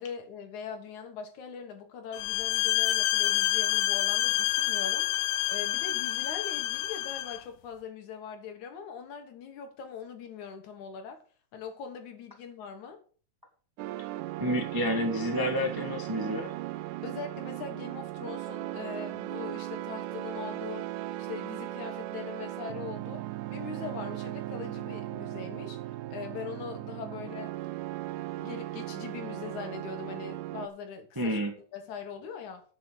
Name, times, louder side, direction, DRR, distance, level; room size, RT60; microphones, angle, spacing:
voice 1, 0.0-5.1 5.5-11.2 11.5-13.0 17.0-20.9 21.2-27.5 28.4-31.4 31.7-32.6, left 6 dB, 65° left, 2.7 m, -41 dB
sound 1, 2.1-7.4, left 15 dB, 85° left, 2.2 m, -28 dB
sound 2, 13.8-30.7, right 15 dB, 80° right, 2.0 m, -37 dB
voice 2, 14.4-16.5 31.2-31.5, equal, 15° right, 0.7 m, -29 dB
7.8 x 6.8 x 7.6 m
omnidirectional pair, 3.9 m